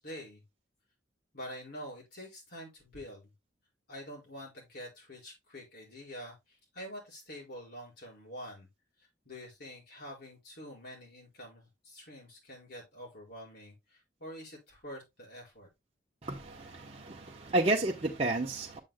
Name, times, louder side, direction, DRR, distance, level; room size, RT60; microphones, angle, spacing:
voice 1, 0.0-0.4 1.3-3.3 3.9-8.7 9.0-15.7, equal, 60° left, 4.8 m, -46 dB
voice 2, 16.2-18.8, right 2 dB, 35° right, 0.8 m, -31 dB
8.1 x 7.4 x 2.2 m
head